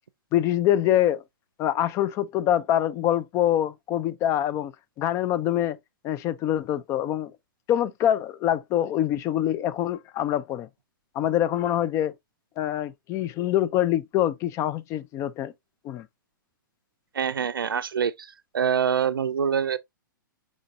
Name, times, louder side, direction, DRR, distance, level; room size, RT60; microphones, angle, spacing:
voice 1, 0.3-1.2 1.6-4.7 5.0-5.8 6.0-7.3 7.7-10.7 11.2-12.1 12.6-15.5 15.8-16.1, left 11 dB, 25° left, 0.3 m, -25 dB
voice 2, 17.1-18.3 18.5-19.8, right 7 dB, 80° right, 0.4 m, -25 dB
4.9 x 3.9 x 2.4 m
figure-of-eight pair, 115°, 11 cm